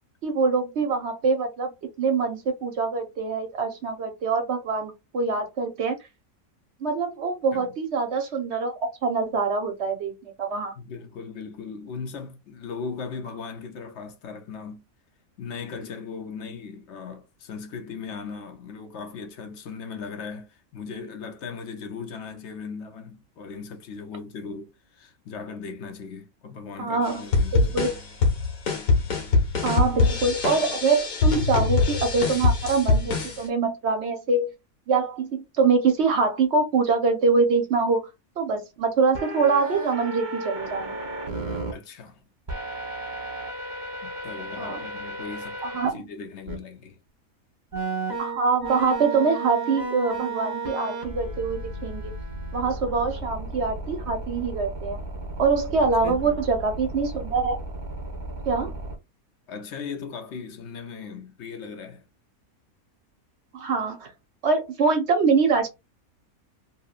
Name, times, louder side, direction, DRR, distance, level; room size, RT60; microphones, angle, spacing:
voice 1, 0.2-1.7 2.0-6.0 6.8-10.7 26.8-27.2 27.5-27.9 29.6-34.5 34.9-38.0 38.4-41.0 44.6-44.8 45.6-46.0 48.2-52.1 52.5-55.0 55.4-57.6 58.5-58.7 63.5-64.1 64.4-65.7, right 4 dB, 60° right, 0.8 m, -24 dB
voice 2, 10.7-14.8 15.4-27.9 41.5-42.2 44.0-45.6 45.9-47.0 55.8-56.4 59.5-62.0, left 5 dB, 60° left, 0.9 m, -38 dB
sound 1, 27.0-33.4, left 3 dB, 85° left, 1.5 m, -23 dB
sound 2, 39.1-41.7 42.5-45.9 46.5-46.6 47.7-58.9, right 2 dB, 40° right, 0.9 m, -34 dB
2.9 x 2.8 x 2.4 m
omnidirectional pair, 1.5 m